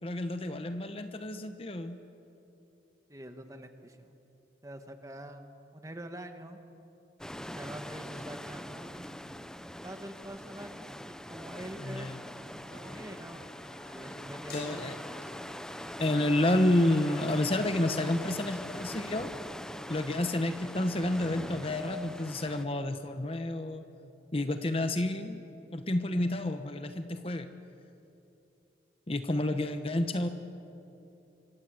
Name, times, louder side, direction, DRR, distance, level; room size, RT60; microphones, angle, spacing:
voice 1, 0.0-2.0 11.8-12.2 14.5-15.0 16.0-19.3 19.9-23.8 24.3-25.4 25.7-27.5 29.1-30.3, left 1 dB, 30° left, 8 dB, 1.0 m, -30 dB
voice 2, 3.1-4.2 4.6-6.6 7.5-11.0 11.3-12.4 12.7-13.4 13.8-14.9, right 1 dB, 20° right, 6 dB, 1.6 m, -45 dB
sound 1, 7.2-22.6, equal, 5° left, 0.6 m, -42 dB
sound 2, 12.6-18.3, left 2 dB, 60° left, 6.4 m, -54 dB
26.0 x 24.0 x 8.0 m, 2.9 s
head